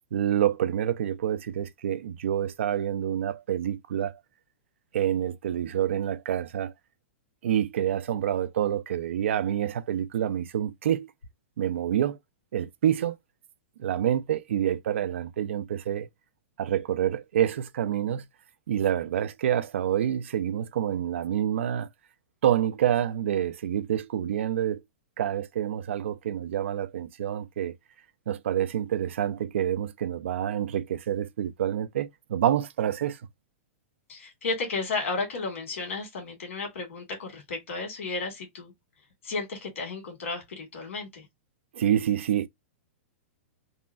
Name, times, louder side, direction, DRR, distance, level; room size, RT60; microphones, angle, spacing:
voice 1, 0.1-4.2 4.9-6.7 7.4-11.1 11.6-12.2 12.5-13.2 13.8-16.1 16.6-18.2 18.7-21.9 22.4-24.8 25.2-27.8 28.3-33.2 41.7-42.5, right 10 dB, 70° right, 0.4 m, -27 dB
voice 2, 34.1-38.7 39.2-41.3, left 3 dB, 90° left, 1.8 m, -33 dB
3.7 x 2.0 x 2.3 m
supercardioid pair, 180°, 7 cm